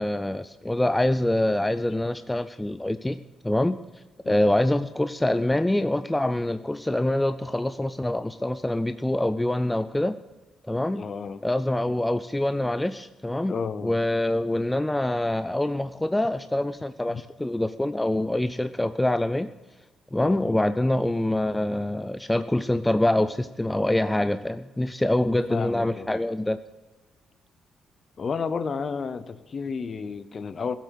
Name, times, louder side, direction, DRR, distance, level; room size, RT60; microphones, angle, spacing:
voice 1, 0.0-3.8 4.3-10.2 10.7-11.0 11.4-13.6 13.8-19.5 20.1-26.6, left 1 dB, 5° left, 11 dB, 0.3 m, -25 dB
voice 2, 10.9-11.4 13.5-14.0 17.1-17.2 20.2-20.6 25.5-26.2 28.2-30.8, left 5 dB, 35° left, 13 dB, 0.7 m, -32 dB
16.5 x 8.1 x 6.4 m, 1.2 s
cardioid pair, 160°, 0 cm